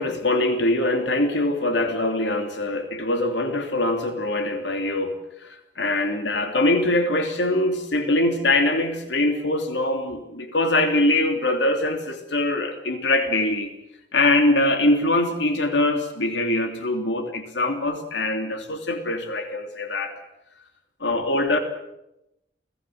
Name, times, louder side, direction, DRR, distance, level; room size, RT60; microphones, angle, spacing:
voice 1, 0.0-13.7 14.1-20.1 21.0-21.6, left 2 dB, 90° left, 5 dB, 3.1 m, -23 dB
30.0 x 18.5 x 7.9 m, 0.87 s
head